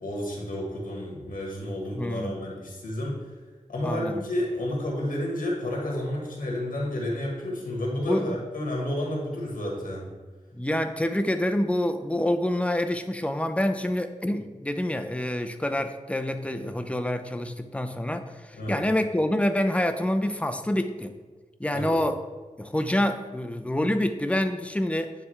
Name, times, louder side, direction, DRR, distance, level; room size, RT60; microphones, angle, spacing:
voice 1, 0.0-3.3 3.7-10.1 18.5-18.8 21.7-22.0, left 1 dB, 85° left, -2 dB, 1.6 m, -31 dB
voice 2, 1.9-2.4 3.8-4.2 8.1-8.4 10.5-21.1 21.6-22.2 22.6-25.1, left 1 dB, 10° left, 8 dB, 0.5 m, -27 dB
9.4 x 3.4 x 3.3 m, 1.3 s
cardioid pair, 60°, 14 cm